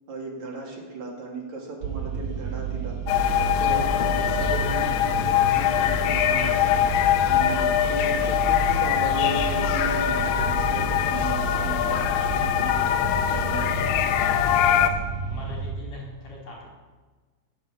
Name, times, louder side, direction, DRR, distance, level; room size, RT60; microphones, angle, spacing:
voice 1, 0.1-3.0 3.4-6.8 7.2-12.0 12.4-13.8, right 3 dB, 45° right, -1 dB, 2.9 m, -36 dB
sound 1, 1.8-15.7, right 7 dB, 75° right, 2.2 m, -32 dB
sound 2, 3.1-14.9, left 10 dB, 85° left, 3.5 m, -23 dB
voice 2, 15.2-16.6, left 2 dB, 35° left, -4 dB, 4.8 m, -40 dB
16.5 x 8.2 x 6.9 m, 1.3 s
omnidirectional pair, 5.7 m